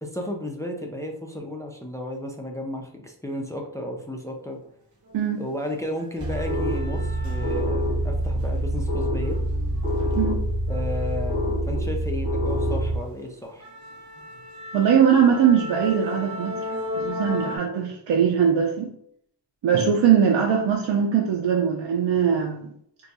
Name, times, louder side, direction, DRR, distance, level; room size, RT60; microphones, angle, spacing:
voice 1, 0.0-4.6 5.4-9.4 10.7-13.7, left 1 dB, 10° left, 2 dB, 0.3 m, -33 dB
sound 1, 5.1-5.2 5.6-8.0 8.3-12.1 12.5-12.7 13.1-13.2 13.6-17.6, left 2 dB, 40° right, 0.8 m, -36 dB
sound 2, 6.2-13.0, equal, 15° right, 1.4 m, -25 dB
voice 2, 14.7-16.6 17.0-18.9 19.6-22.7, right 7 dB, 85° right, -1 dB, 0.6 m, -21 dB
2.6 x 2.3 x 3.9 m, 0.70 s
wide cardioid pair, 130°, 44 cm